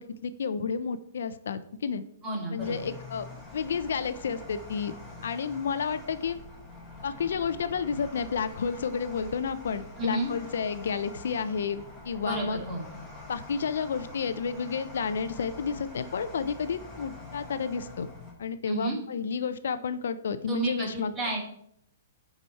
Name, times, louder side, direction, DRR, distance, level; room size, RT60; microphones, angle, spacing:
voice 1, 0.0-2.0 2.5-3.3 3.5-4.9 5.2-6.4 7.0-12.6 13.3-18.1 18.4-21.1, left 6 dB, 75° left, 13 dB, 0.6 m, -31 dB
voice 2, 2.2-2.8 10.0-10.3 12.2-12.8 18.6-19.0 20.5-21.4, right 1 dB, 15° right, -1 dB, 2.3 m, -31 dB
sound 1, 2.6-18.3, left 2 dB, 5° left, 1.5 m, -45 dB
10.0 x 4.9 x 4.2 m, 0.70 s
hypercardioid pair, 165°, 0 cm